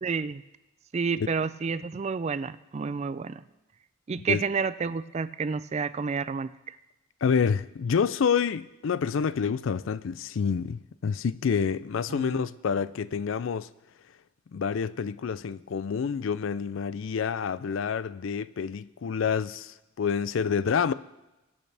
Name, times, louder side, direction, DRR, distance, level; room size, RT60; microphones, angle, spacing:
voice 1, 0.0-0.4 0.9-3.4 4.1-6.8 12.1-12.5, right 5 dB, 30° right, 0.3 m, -30 dB
voice 2, 7.2-13.7 14.5-20.9, left 6 dB, 65° left, 0.4 m, -28 dB
22.0 x 8.5 x 3.4 m
head